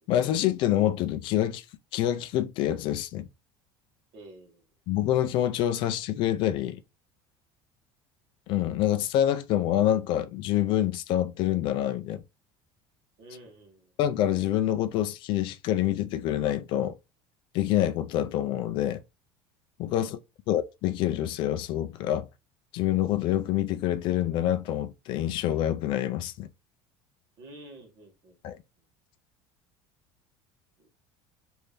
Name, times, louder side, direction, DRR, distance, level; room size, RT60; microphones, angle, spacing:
voice 1, 0.1-1.6 1.9-3.3 4.9-6.8 8.5-12.2 14.0-17.0 17.5-19.0 19.8-20.2 20.5-22.3 22.7-26.5 28.4-28.6, left 12 dB, 50° left, 0.4 m, -26 dB
voice 2, 4.1-4.6 13.2-13.9 19.9-20.1 27.4-28.4 30.8-30.9, right 1 dB, 50° right, 1.4 m, -49 dB
3.2 x 2.6 x 3.4 m
cardioid pair, 155°, 10 cm